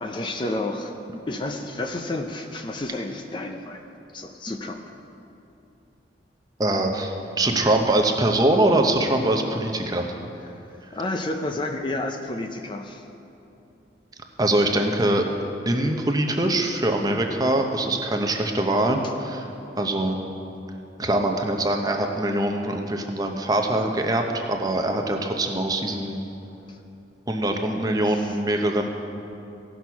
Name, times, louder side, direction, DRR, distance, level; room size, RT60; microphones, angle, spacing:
voice 1, 0.0-0.9 1.3-3.8 4.1-4.8 10.5-13.1 26.7-26.8 28.1-28.4, left 2 dB, 25° left, 4 dB, 0.5 m, -31 dB
voice 2, 6.6-10.1 14.4-15.3 15.7-19.5 19.8-20.2 21.0-26.2 27.3-28.9, right 1 dB, 20° right, 3 dB, 0.7 m, -23 dB
16.0 x 6.2 x 5.7 m, 2.8 s
head